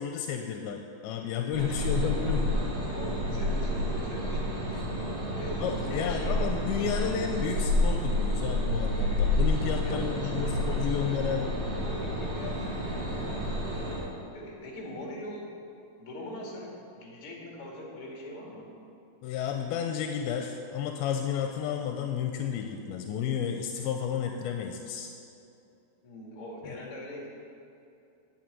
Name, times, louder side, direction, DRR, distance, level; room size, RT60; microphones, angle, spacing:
voice 1, 0.0-2.5 5.6-11.5 19.2-25.1 26.6-26.8, left 8 dB, 85° left, 4 dB, 2.5 m, -32 dB
sound 1, 1.5-14.0, left 1 dB, 45° right, 3.3 m, -29 dB
voice 2, 1.7-2.4 2.6-4.8 5.4-6.7 9.8-11.5 11.8-13.1 14.3-15.5 16.0-18.7 26.0-27.3, left 1 dB, 45° left, -2 dB, 2.4 m, -42 dB
9.1 x 6.8 x 8.8 m, 2.7 s
omnidirectional pair, 4.3 m